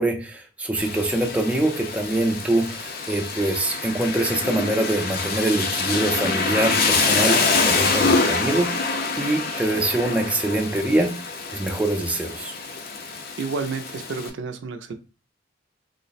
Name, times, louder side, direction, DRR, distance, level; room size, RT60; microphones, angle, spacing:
voice 1, 0.0-11.1 11.5-12.5, right 1 dB, 5° right, 3 dB, 0.4 m, -24 dB
Rain, 0.8-14.3, left 4 dB, 55° left, 0.6 m, -25 dB
voice 2, 13.4-14.9, right 4 dB, 75° right, 8 dB, 0.4 m, -30 dB
3.2 x 2.0 x 4.1 m, 0.33 s
head